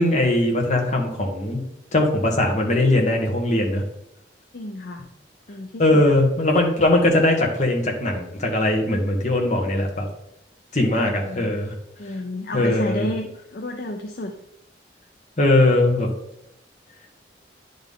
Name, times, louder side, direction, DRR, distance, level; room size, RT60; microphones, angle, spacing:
voice 1, 0.0-1.6 1.9-3.8 5.8-10.1 10.7-11.7 12.5-13.1 15.4-16.1, left 1 dB, 45° left, 1 dB, 1.4 m, -20 dB
voice 2, 4.5-5.0 5.5-6.0 11.3-11.5 12.0-14.4, left 1 dB, 60° left, 5 dB, 0.5 m, -31 dB
10.0 x 4.0 x 3.6 m, 0.81 s
head